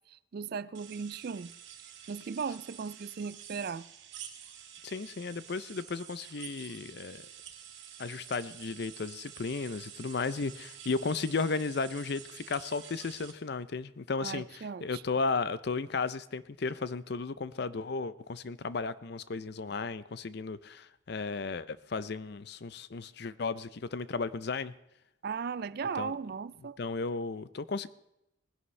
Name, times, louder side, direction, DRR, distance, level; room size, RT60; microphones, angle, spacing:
voice 1, 0.1-1.5 2.1-3.9 14.2-15.0 25.2-26.8, right 5 dB, 50° right, 0.3 m, -37 dB
sound 1, 0.7-13.3, right 9 dB, 70° right, 1.9 m, -49 dB
voice 2, 4.8-7.3 8.0-24.7 26.0-26.1 26.8-27.9, left 4 dB, 55° left, 0.5 m, -34 dB
19.5 x 11.0 x 3.3 m
head